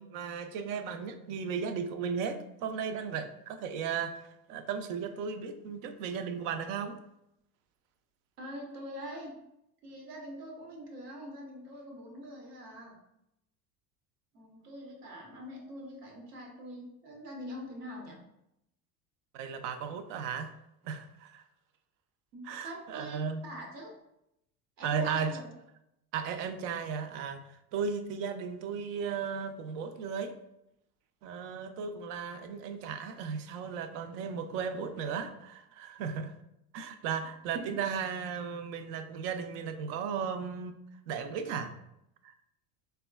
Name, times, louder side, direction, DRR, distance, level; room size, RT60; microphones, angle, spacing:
voice 1, 0.0-7.0 19.3-20.5 20.8-21.4 22.4-23.4 24.8-25.4 26.1-27.4 27.7-30.4 31.2-36.3 36.7-40.8 41.1-41.7 42.2-42.3, right 6 dB, 55° right, 9 dB, 0.5 m, -35 dB
voice 2, 8.4-9.4 9.8-13.0 14.3-18.2 22.3-23.9 24.8-25.5, equal, 85° right, 0 dB, 1.0 m, -44 dB
3.6 x 2.2 x 2.3 m, 0.82 s
hypercardioid pair, 85°, 46 cm